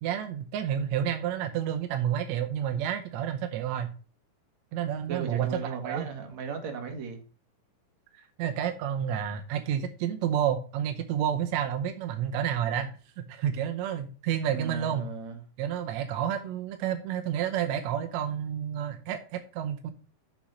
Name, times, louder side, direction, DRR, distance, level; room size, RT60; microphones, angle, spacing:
voice 1, 0.0-3.9 4.7-6.1 8.1-12.9 13.2-15.0 15.6-19.9, right 9 dB, 75° right, 7 dB, 1.7 m, -30 dB
voice 2, 5.1-7.2 14.5-15.4, right 6 dB, 60° right, 4 dB, 2.6 m, -36 dB
7.2 x 5.3 x 6.1 m, 0.38 s
omnidirectional pair, 4.0 m